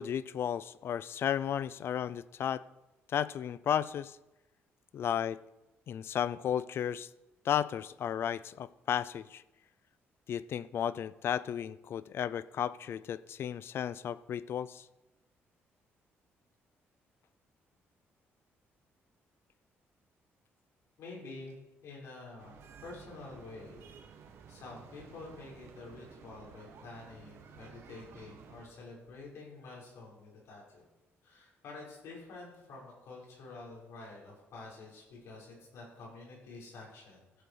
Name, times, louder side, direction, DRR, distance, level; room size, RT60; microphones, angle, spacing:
voice 1, 0.0-2.6 3.1-4.2 4.9-5.4 5.9-7.1 7.4-9.4 10.3-14.9, left 9 dB, 60° left, 18 dB, 0.5 m, -34 dB
voice 2, 21.0-30.8 31.2-37.4, left 3 dB, 75° left, -3 dB, 5.5 m, -49 dB
sound 1, 22.4-28.7, right 6 dB, 65° right, 1.6 m, -54 dB
15.5 x 7.8 x 4.9 m, 0.98 s
cardioid pair, 115°, 5 cm